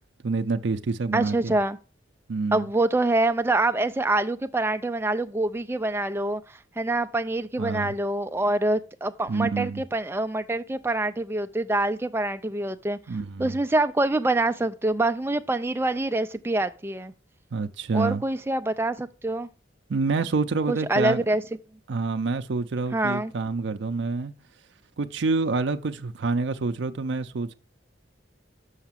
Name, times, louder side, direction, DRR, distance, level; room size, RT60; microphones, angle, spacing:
voice 1, 0.2-1.6 2.3-2.7 7.6-7.9 9.3-9.8 13.1-13.6 17.5-18.2 19.9-21.2 21.9-24.3 25.0-27.5, right 4 dB, 75° right, 0.5 m, -27 dB
voice 2, 1.1-1.8 2.5-6.4 6.8-13.0 13.4-17.1 17.9-19.5 20.7-21.4 22.9-23.3, right 2 dB, 10° right, 0.4 m, -25 dB
6.5 x 5.9 x 7.3 m
head